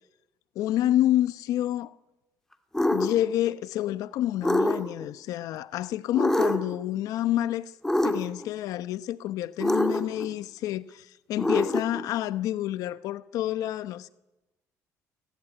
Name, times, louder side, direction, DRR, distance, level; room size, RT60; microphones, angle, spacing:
voice 1, 0.5-1.9 2.9-7.7 8.0-14.1, left 13 dB, 80° left, 0.9 m, -28 dB
sound 1, 2.7-3.2 4.4-5.1 6.1-6.8 7.8-8.5 9.6-10.3 11.4-12.0, left 1 dB, 5° left, 2.3 m, -25 dB
29.5 x 20.0 x 9.9 m
cardioid pair, 120°, 6 cm